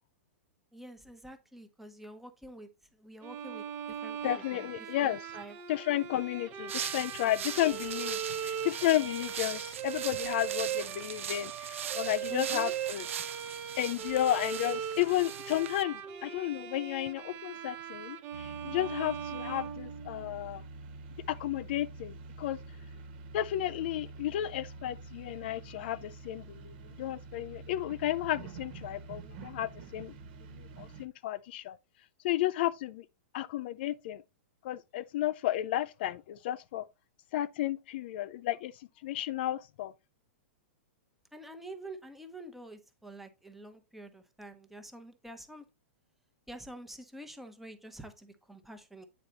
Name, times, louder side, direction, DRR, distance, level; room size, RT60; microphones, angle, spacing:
voice 1, 0.7-2.7 3.0-4.2 4.6-4.7 5.0-5.5 12.3-12.7 41.3-45.6 46.5-49.1, right 1 dB, 5° right, 0.9 m, -47 dB
Bowed string instrument, 3.2-20.4, right 9 dB, 35° right, 1.0 m, -39 dB
voice 2, 4.2-5.3 5.7-13.0 13.8-20.6 21.3-22.6 23.3-30.1 30.5-31.8 32.2-33.1 33.3-34.2 34.6-36.8 37.3-39.9, left 13 dB, 55° left, 0.4 m, -33 dB
sound 1, 6.7-15.8, right 9 dB, 85° right, 0.6 m, -40 dB
sound 2, 18.3-31.1, right 3 dB, 50° right, 1.3 m, -47 dB
8.9 x 4.1 x 3.9 m
hypercardioid pair, 145°, 7 cm